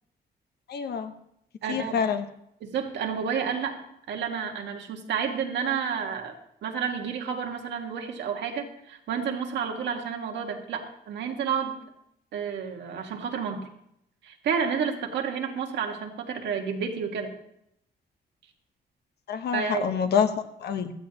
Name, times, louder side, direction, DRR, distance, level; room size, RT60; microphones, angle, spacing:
voice 1, 0.7-1.1 1.7-2.2 19.3-20.3 20.6-20.9, left 7 dB, 70° left, 8 dB, 1.1 m, -26 dB
voice 2, 1.6-2.0 2.6-3.8 4.1-6.4 6.6-11.8 12.3-13.7 14.2-17.3 19.5-19.9, right 7 dB, 90° right, 3 dB, 1.7 m, -30 dB
15.5 x 13.0 x 2.9 m, 0.76 s
cardioid pair, 110°, 18 cm